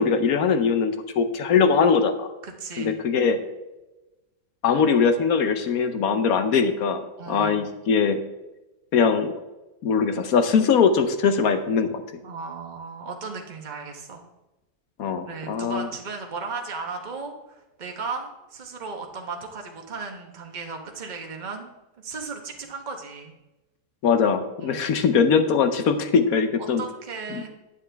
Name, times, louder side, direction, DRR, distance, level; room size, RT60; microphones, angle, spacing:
voice 1, 0.0-2.3 2.8-3.4 4.6-8.2 8.9-9.3 9.8-12.0 15.0-15.9 24.0-26.8 27.3-27.5, left 6 dB, 65° left, 8 dB, 1.1 m, -21 dB
voice 2, 2.4-2.9 7.2-7.7 12.2-14.2 15.3-21.7 22.0-23.3 24.6-25.0 26.5-27.5, right 4 dB, 30° right, 3 dB, 1.1 m, -36 dB
9.6 x 9.0 x 3.4 m, 1.0 s
omnidirectional pair, 1.8 m